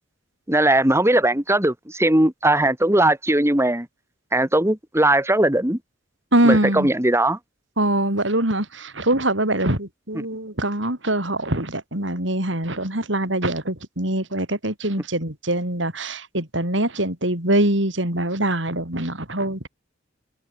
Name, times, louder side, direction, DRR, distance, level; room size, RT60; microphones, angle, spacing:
voice 1, 0.5-3.9 4.3-5.8 6.4-7.4, right 1 dB, 15° right, 2.5 m, -19 dB
voice 2, 6.3-6.9 7.8-19.7, right 1 dB, 65° right, 6.3 m, -23 dB
head